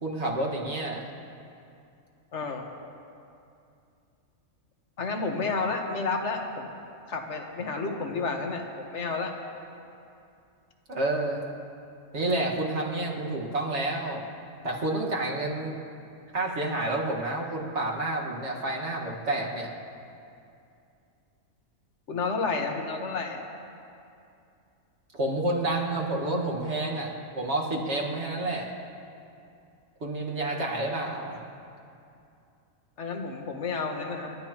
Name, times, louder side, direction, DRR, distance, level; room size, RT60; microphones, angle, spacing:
voice 1, 0.0-1.0 10.9-11.4 12.1-14.2 14.6-15.7 16.3-19.7 25.1-28.7 30.0-31.4, right 2 dB, 55° right, -2 dB, 2.0 m, -29 dB
voice 2, 2.3-2.6 5.0-6.7 7.1-9.3 22.1-23.4 33.0-34.4, left 4 dB, 55° left, 3 dB, 1.5 m, -31 dB
29.0 x 12.5 x 3.0 m, 2.6 s
omnidirectional pair, 1.4 m